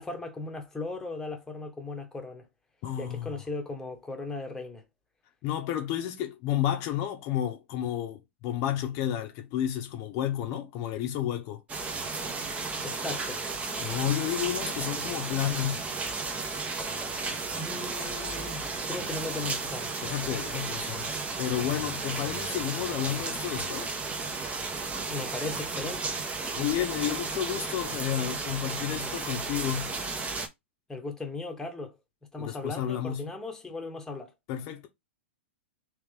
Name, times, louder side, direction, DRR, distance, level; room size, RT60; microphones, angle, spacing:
voice 1, 0.0-2.5 3.0-4.8 12.8-13.4 17.6-20.0 25.1-26.1 30.9-32.0 32.3-34.3, left 3 dB, 5° left, 1.1 m, -37 dB
voice 2, 2.8-3.3 5.4-11.6 13.8-15.8 20.0-21.1 21.4-24.0 26.5-29.9 32.4-33.3 34.5-34.9, left 11 dB, 40° left, 0.8 m, -31 dB
sound 1, 11.7-30.5, right 4 dB, 20° right, 0.9 m, -34 dB
3.5 x 3.3 x 3.4 m
hypercardioid pair, 115°, 7 cm